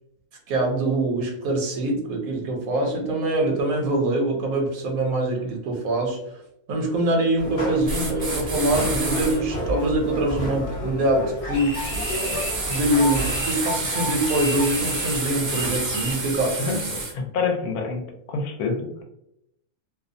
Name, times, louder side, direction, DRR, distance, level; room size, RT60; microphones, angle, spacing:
voice 1, 0.5-6.2 6.7-11.8 12.3-12.4 12.7-17.0, right 1 dB, 75° right, 1 dB, 1.1 m, -24 dB
sound 1, 7.4-13.4, equal, 35° left, 0.6 m, -31 dB
sound 2, 7.9-9.4 11.7-17.1, right 2 dB, 50° right, 0.5 m, -29 dB
sound 3, 11.4-16.3, left 1 dB, 55° left, 0.9 m, -34 dB
voice 2, 17.1-18.0 18.3-19.0, left 4 dB, 80° left, 3 dB, 1.1 m, -26 dB
2.7 x 2.0 x 2.5 m, 0.79 s
omnidirectional pair, 1.6 m